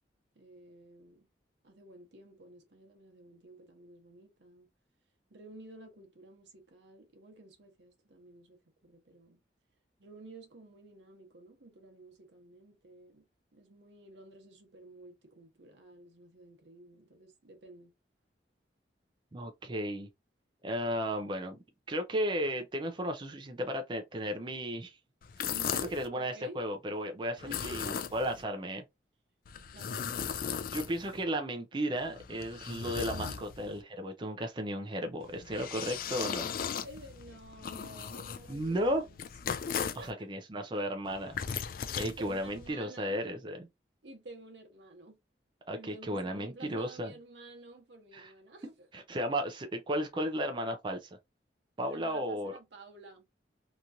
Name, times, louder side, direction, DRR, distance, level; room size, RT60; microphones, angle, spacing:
voice 1, 0.3-1.3 1.6-4.7 5.3-9.4 10.0-13.2 13.5-17.9 25.4-26.6 27.4-28.0 29.7-30.2 33.2-33.4 35.8-36.4 36.8-39.2 39.6-40.3 42.2-43.3 44.0-45.2 45.7-48.9 51.9-53.3, right 2 dB, 80° right, 0.9 m, -51 dB
voice 2, 19.3-20.1 20.6-21.6 21.9-25.0 25.4-25.5 25.9-28.8 30.7-36.5 38.5-39.0 40.0-41.4 41.9-43.7 45.7-47.1 48.1-48.3 48.9-51.1 51.8-52.6, equal, 25° right, 0.4 m, -34 dB
sound 1, 25.2-26.1 27.4-28.4 29.5-31.2 32.0-33.8 35.2-40.1 41.1-42.7, left 7 dB, 55° left, 0.4 m, -38 dB
2.9 x 2.4 x 2.6 m
head